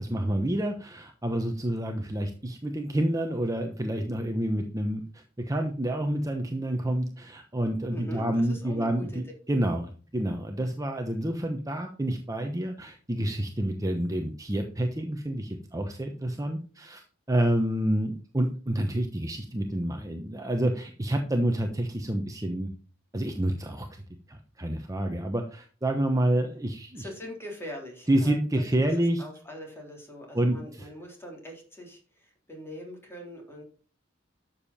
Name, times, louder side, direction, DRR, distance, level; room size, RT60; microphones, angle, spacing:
voice 1, 0.0-9.2 9.5-17.0 17.3-22.7 23.1-24.0 24.3-27.1 28.1-29.2 30.3-30.9, right 1 dB, 15° right, 4 dB, 1.0 m, -28 dB
voice 2, 7.9-9.2 26.9-28.4 29.2-33.6, equal, 15° left, 0 dB, 3.7 m, -42 dB
12.0 x 7.3 x 4.3 m, 0.40 s
head